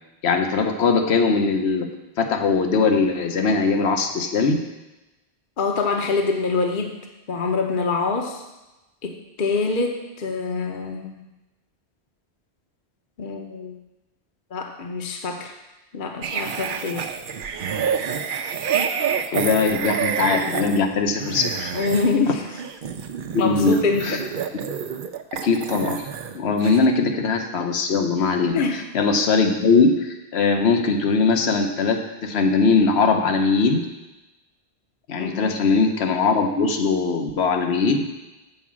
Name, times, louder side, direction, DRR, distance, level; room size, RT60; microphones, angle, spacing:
voice 1, 0.2-1.9 2.2-4.6 19.3-21.7 23.3-24.2 25.4-26.1 26.3-33.9 35.1-38.0, left 4 dB, 80° left, 5 dB, 1.1 m, -20 dB
voice 2, 5.6-6.9 7.3-8.4 9.0-11.1 13.2-13.7 14.5-15.5 15.9-17.1 21.7-22.4 23.4-24.2 28.5-28.8 35.2-35.6, left 4 dB, 55° left, 3 dB, 0.9 m, -25 dB
sound 1, 16.2-26.4 26.6-26.9, right 7 dB, 60° right, 0.7 m, -28 dB
7.7 x 4.8 x 7.3 m, 1.0 s
omnidirectional pair, 1.1 m